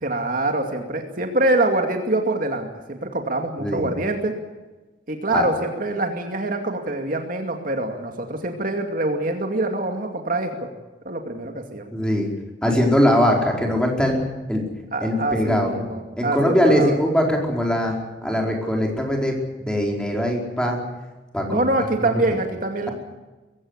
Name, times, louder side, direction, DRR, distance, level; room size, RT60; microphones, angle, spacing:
voice 1, 0.0-4.3 5.1-10.7 11.0-11.9 14.9-17.0 21.5-22.9, right 2 dB, 50° right, 4 dB, 2.4 m, -25 dB
voice 2, 11.9-12.3 12.6-14.2 14.5-14.6 15.0-15.8 16.2-20.8 21.3-21.6 22.1-22.2, equal, 5° left, 0 dB, 4.7 m, -21 dB
22.5 x 16.5 x 9.9 m, 1.2 s
head